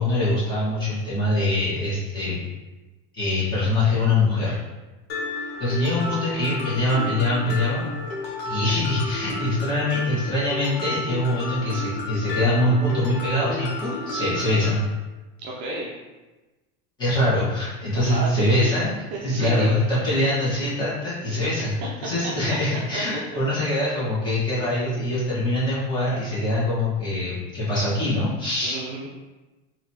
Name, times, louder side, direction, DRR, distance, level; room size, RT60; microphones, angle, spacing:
voice 1, 0.0-2.3 3.1-4.6 5.6-7.9 8.4-14.8 17.0-18.9 19.2-21.8 22.0-28.8, left 1 dB, 15° left, -9 dB, 1.4 m, -23 dB
Mallet percussion, 5.1-14.7, left 2 dB, 90° left, 1.1 m, -32 dB
voice 2, 15.4-15.9 17.3-17.4 17.9-20.1 21.1-21.7 22.2-23.2 23.8-24.0 28.6-29.1, right 2 dB, 35° right, -4 dB, 0.5 m, -34 dB
4.0 x 2.9 x 2.8 m, 1.1 s
supercardioid pair, 160°, 30 cm